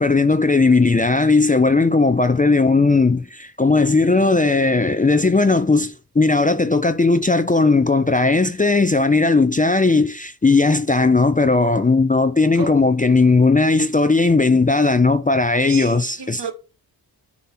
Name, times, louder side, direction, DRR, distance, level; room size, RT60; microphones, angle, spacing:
voice 1, 0.0-16.4, left 3 dB, 20° left, 0.5 m, -17 dB
voice 2, 15.6-16.5, right 4 dB, 60° right, 1.3 m, -31 dB
6.7 x 3.0 x 5.8 m
cardioid pair, 40°, 46 cm